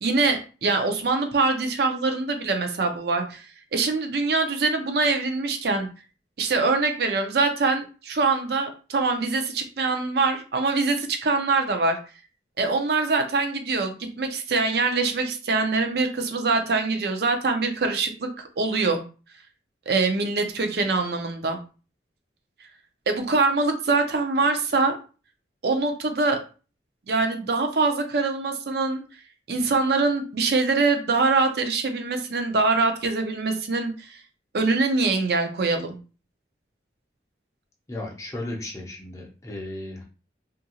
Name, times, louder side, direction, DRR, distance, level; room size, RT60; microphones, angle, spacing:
voice 1, 0.0-5.9 6.4-12.0 12.6-18.3 18.6-19.0 19.9-21.6 23.1-24.9 25.6-26.4 27.1-29.0 29.5-34.2 34.5-36.0, right 3 dB, 60° right, 5 dB, 0.5 m, -24 dB
voice 2, 37.9-40.0, left 1 dB, 15° left, -1 dB, 0.5 m, -35 dB
2.7 x 2.5 x 2.8 m, 0.35 s
head